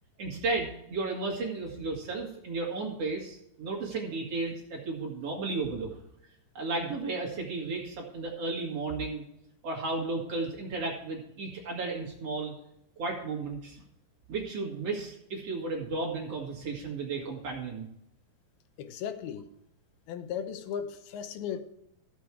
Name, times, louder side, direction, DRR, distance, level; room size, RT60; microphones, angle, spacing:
voice 1, 0.2-6.0 6.5-9.2 9.6-12.5 13.0-13.8 14.3-17.9, right 3 dB, 50° right, 2.6 m, -34 dB
voice 2, 18.8-19.5 20.1-21.6, left 8 dB, 90° left, 2.8 m, -36 dB
14.5 x 7.3 x 4.7 m
omnidirectional pair, 4.2 m